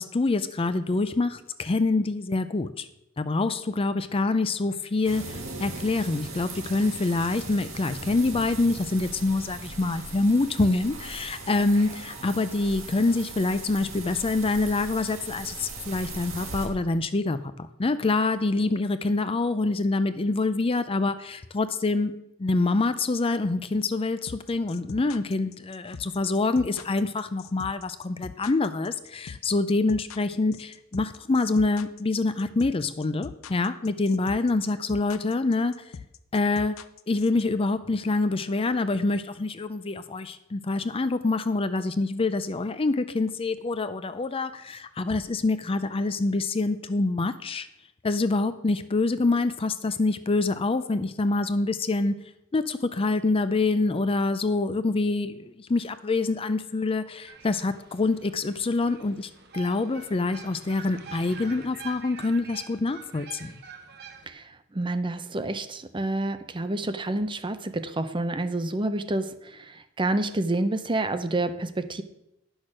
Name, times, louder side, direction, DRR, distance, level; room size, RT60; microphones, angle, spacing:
voice 1, 0.0-2.9 3.2-22.1 22.4-35.7 36.3-36.8 37.1-47.7 48.0-52.2 52.5-63.5, left 3 dB, 25° left, 12 dB, 0.5 m, -26 dB
sound 1, 5.0-16.7, right 3 dB, 75° right, 2.1 m, -39 dB
sound 2, 24.3-37.4, left 5 dB, 90° left, 0.6 m, -42 dB
sound 3, 57.3-64.3, right 5 dB, 55° right, 1.1 m, -45 dB
voice 2, 64.3-72.0, right 2 dB, 25° right, 11 dB, 0.6 m, -29 dB
10.5 x 6.4 x 6.2 m, 0.85 s
head